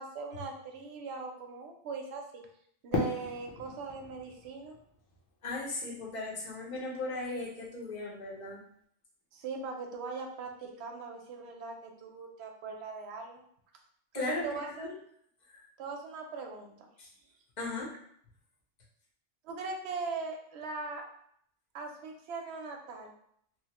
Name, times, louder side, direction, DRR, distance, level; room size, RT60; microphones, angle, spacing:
voice 1, 0.0-2.4 2.8-4.7 9.3-13.4 14.1-15.0 15.8-16.9 19.4-21.0 21.7-23.1, right 4 dB, 65° right, 3 dB, 0.8 m, -40 dB
Fireworks, 2.9-6.0, left 2 dB, 70° left, 0.9 m, -37 dB
voice 2, 5.4-8.6 14.1-14.9 15.5-15.7 17.0-17.1 17.6-17.9, left 2 dB, 45° left, -3 dB, 0.7 m, -37 dB
2.9 x 2.0 x 2.9 m, 0.68 s
omnidirectional pair, 1.3 m